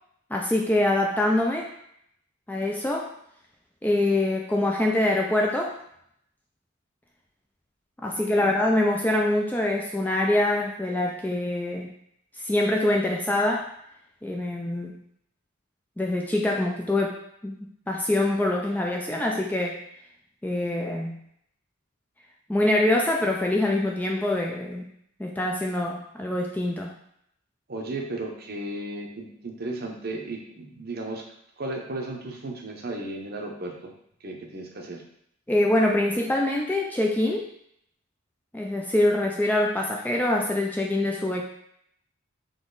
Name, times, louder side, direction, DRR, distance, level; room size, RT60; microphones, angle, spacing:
voice 1, 0.3-1.7 2.5-3.1 3.8-5.8 8.0-11.9 12.4-13.7 14.2-15.0 16.0-17.6 17.9-19.8 20.4-21.2 22.5-24.8 25.2-26.9 35.5-37.5 38.5-41.4, left 1 dB, 10° left, 0 dB, 0.3 m, -24 dB
voice 2, 8.1-8.6 27.7-31.2 31.6-33.9 34.2-35.0, right 2 dB, 45° right, 1 dB, 0.7 m, -35 dB
3.9 x 3.0 x 3.8 m, 0.72 s
head